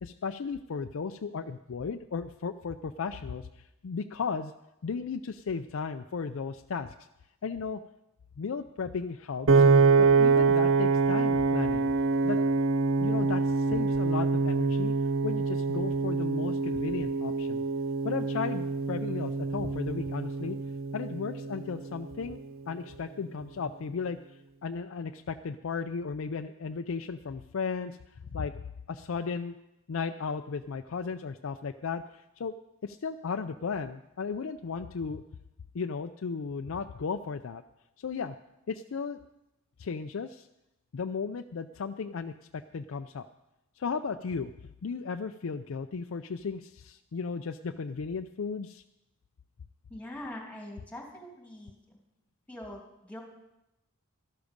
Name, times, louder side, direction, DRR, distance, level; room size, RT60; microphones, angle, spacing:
voice 1, 0.0-3.5 3.8-4.5 4.8-6.9 7.4-7.8 8.4-9.6 10.0-11.9 12.2-12.4 13.0-14.9 15.2-17.6 18.0-20.6 20.9-22.4 22.7-24.2 24.6-28.0 28.3-28.6 28.9-29.6 29.9-32.5 32.8-35.2 35.7-37.6 38.0-38.4 38.7-39.2 39.8-40.5 40.9-43.3 43.8-44.5 44.8-48.8, left 5 dB, 70° left, 7 dB, 0.5 m, -35 dB
Piano, 9.5-21.7, right 4 dB, 70° right, 0.6 m, -25 dB
voice 2, 49.9-51.8 52.5-53.2, left 1 dB, 5° left, 0 dB, 2.6 m, -43 dB
13.0 x 12.0 x 5.2 m, 0.92 s
head